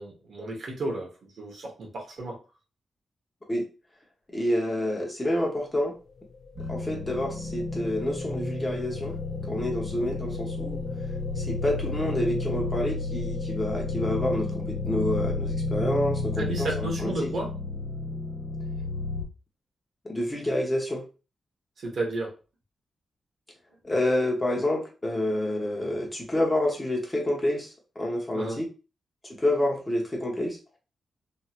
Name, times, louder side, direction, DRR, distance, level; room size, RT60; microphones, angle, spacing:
voice 1, 0.0-2.4 16.4-17.5 21.8-22.3 28.3-28.6, right 2 dB, 65° right, 0 dB, 1.1 m, -33 dB
voice 2, 4.3-5.9 6.7-9.2 9.5-10.8 11.4-17.3 20.0-21.0 23.8-28.6 29.4-30.6, left 1 dB, 15° left, -1 dB, 0.9 m, -28 dB
sound 1, 5.7-17.9, left 4 dB, 35° left, 0.4 m, -40 dB
sound 2, 6.6-19.2, left 3 dB, 30° right, 1.6 m, -32 dB
3.1 x 2.7 x 2.4 m, 0.33 s
wide cardioid pair, 125°, 0 cm